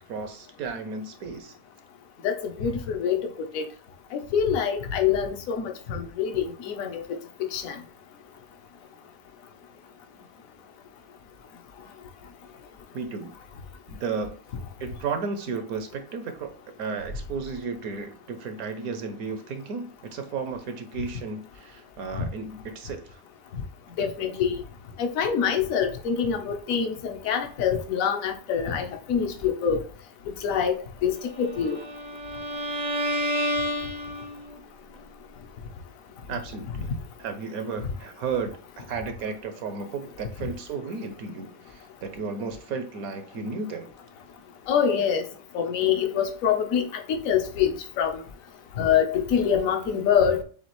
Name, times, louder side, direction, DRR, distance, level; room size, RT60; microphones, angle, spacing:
voice 1, 0.1-1.5 12.9-13.3 13.9-14.4 14.8-23.2 36.3-36.9 37.2-43.9, right 5 dB, 70° right, 8 dB, 1.1 m, -34 dB
voice 2, 2.2-3.6 4.1-7.0 7.5-7.8 22.2-22.3 23.5-23.6 24.0-24.6 25.0-29.8 30.3-30.8 31.0-31.8 40.4-40.5 44.7-45.3 45.5-48.2 48.8-50.4, left 7 dB, 60° left, 5 dB, 1.1 m, -25 dB
Bowed string instrument, 31.5-34.6, equal, 45° right, 0.5 m, -30 dB
7.0 x 2.4 x 3.0 m, 0.42 s
omnidirectional pair, 1.7 m